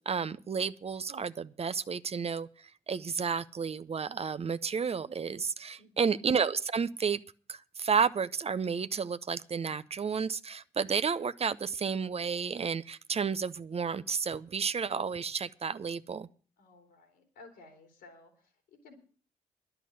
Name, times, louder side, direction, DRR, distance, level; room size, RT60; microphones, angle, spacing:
voice 1, 0.0-7.2 7.5-16.3, right 6 dB, 40° right, 0.6 m, -31 dB
voice 2, 5.8-6.2 16.6-18.9, left 3 dB, 75° left, 3.1 m, -56 dB
11.0 x 7.0 x 9.4 m
hypercardioid pair, 45°, 17 cm